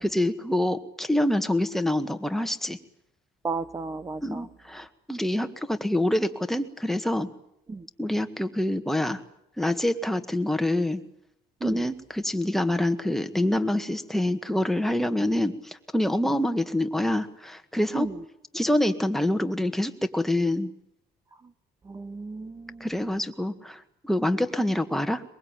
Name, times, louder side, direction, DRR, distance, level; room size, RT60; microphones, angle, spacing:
voice 1, 0.0-2.8 4.2-7.3 8.0-9.2 9.6-11.0 11.6-18.1 18.5-20.7 22.8-25.2, left 1 dB, ahead, 7 dB, 1.8 m, -26 dB
voice 2, 3.4-4.5 7.7-7.9 11.6-11.8 17.9-18.2 21.8-22.9, right 4 dB, 20° right, 13 dB, 0.9 m, -34 dB
23.0 x 22.0 x 9.0 m, 0.79 s
cardioid pair, 110°, 17 cm